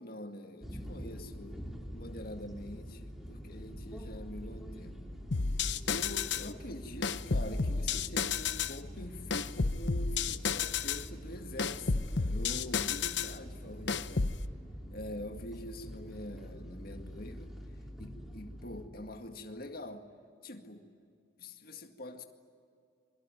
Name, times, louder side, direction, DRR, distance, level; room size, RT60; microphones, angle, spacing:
voice 1, 0.0-5.0 5.9-14.3 14.9-17.5 18.0-20.0 20.4-20.9 21.4-22.2, left 1 dB, 55° left, 5 dB, 2.1 m, -45 dB
sound 1, 0.6-18.9, equal, ahead, 3.6 m, -45 dB
sound 2, 5.3-6.5 7.0-8.8 9.3-11.1 11.6-13.4 13.9-14.4, left 5 dB, 70° left, 0.9 m, -31 dB
27.0 x 23.0 x 9.1 m, 2.3 s
head